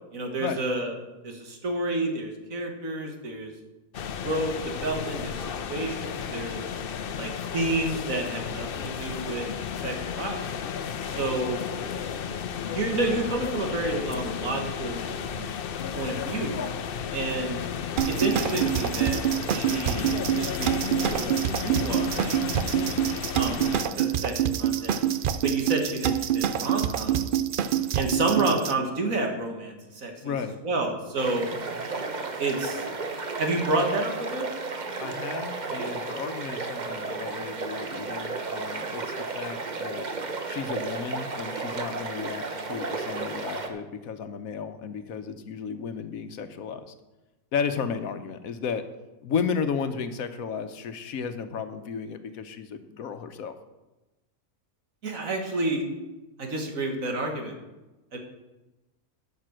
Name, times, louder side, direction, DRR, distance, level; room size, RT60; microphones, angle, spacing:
voice 1, 0.1-0.9 1.2-3.5 4.2-6.6 7.2-9.5 9.8-10.5 11.1-11.6 12.7-15.5 15.9-16.6 17.1-17.7 18.1-19.2 19.5-22.4 23.3-23.6 24.0-25.0 25.4-27.3 28.0-30.4 30.6-31.5 32.4-32.9 33.4-34.5 55.0-55.8 56.4-57.5 58.1-58.2, right 2 dB, 70° right, 3 dB, 2.0 m, -30 dB
sound 1, 3.9-23.9, left 7 dB, 55° left, 0.6 m, -33 dB
sound 2, 18.0-28.7, right 10 dB, 90° right, 0.4 m, -26 dB
voice 2, 30.2-30.5 35.0-40.1 40.4-46.9 47.5-48.8 49.2-53.5, left 6 dB, 80° left, 9 dB, 1.2 m, -33 dB
sound 3, 31.2-43.7, right 3 dB, 35° right, 1.0 m, -33 dB
12.0 x 5.9 x 6.4 m, 1.1 s
omnidirectional pair, 1.5 m